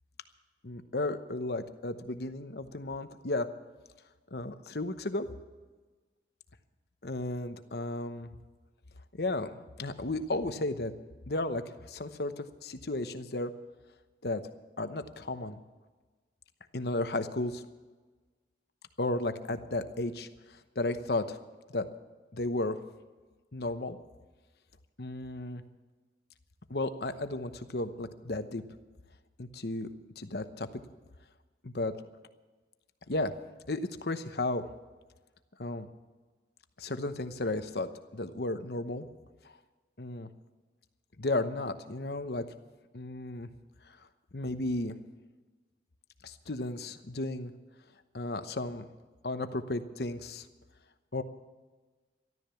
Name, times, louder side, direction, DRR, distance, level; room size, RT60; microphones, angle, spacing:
voice 1, 0.6-3.5 4.3-5.3 7.0-8.3 9.2-9.5 9.8-10.9 11.3-13.5 14.2-14.4 14.8-15.6 16.7-17.6 19.0-21.4 21.7-21.9 22.3-22.8 23.5-24.0 25.0-25.6 26.7-28.6 29.4-29.9 30.2-30.8 31.6-31.9 33.1-33.3 33.7-34.6 35.6-35.9 36.8-39.0 40.0-40.3 41.2-42.5 42.9-43.5 43.9-44.0 44.3-45.0 46.2-47.5 48.1-48.8 49.2-50.5 51.1-51.2, left 2 dB, 60° left, 10 dB, 1.0 m, -34 dB
13.5 x 12.5 x 7.0 m, 1.3 s
head